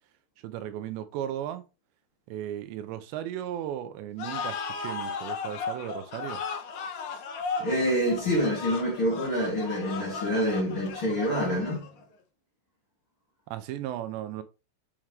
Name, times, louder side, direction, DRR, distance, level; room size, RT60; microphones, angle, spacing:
voice 1, 0.4-1.6 2.3-6.4 13.5-14.4, right 11 dB, 80° right, 2.9 m, -35 dB
sound 1, 4.2-12.0, left 5 dB, 70° left, 2.0 m, -36 dB
voice 2, 7.6-11.8, equal, 35° left, 2.6 m, -27 dB
7.4 x 6.1 x 3.3 m
omnidirectional pair, 5.1 m